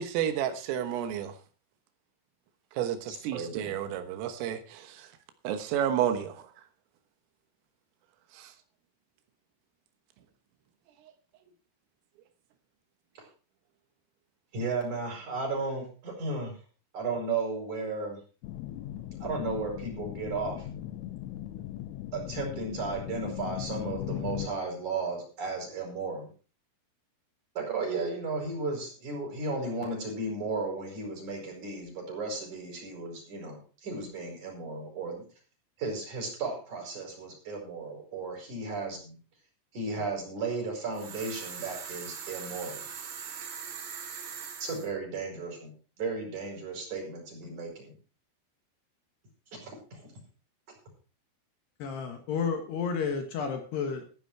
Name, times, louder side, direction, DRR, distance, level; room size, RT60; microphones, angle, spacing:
voice 1, 0.0-1.3 2.8-5.1 5.5-6.4 8.3-8.5, right 10 dB, 85° right, 3.8 m, -31 dB
voice 2, 3.1-3.7 13.1-13.2 14.5-16.6 16.9-18.2 19.2-20.6 22.1-26.3 27.5-35.2 35.8-39.2 39.7-42.8 44.6-48.0 49.5-50.1, right 3 dB, 40° right, 6.2 m, -34 dB
sound 1, 18.4-24.5, left 13 dB, 85° left, 3.5 m, -38 dB
sound 2, 40.9-44.9, right 7 dB, 60° right, 3.9 m, -41 dB
voice 3, 51.8-54.0, left 6 dB, 65° left, 3.2 m, -31 dB
14.5 x 10.0 x 4.6 m
omnidirectional pair, 5.8 m